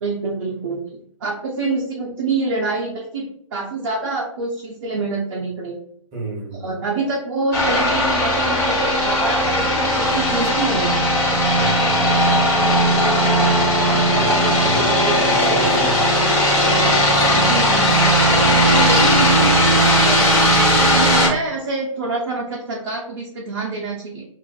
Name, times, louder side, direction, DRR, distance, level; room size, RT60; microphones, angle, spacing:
voice 1, 0.0-5.8 6.5-11.0 14.9-15.1 15.4-15.9 17.3-20.5 20.9-24.3, right 3 dB, 45° right, -3 dB, 0.6 m, -26 dB
voice 2, 6.1-6.7 11.4-12.2 14.1-14.9 15.2-16.0, right 3 dB, 20° right, -5 dB, 1.0 m, -30 dB
sound 1, 7.5-21.3, equal, 15° left, 0.7 m, -17 dB
2.5 x 2.4 x 2.3 m, 0.65 s
figure-of-eight pair, 140°, 17 cm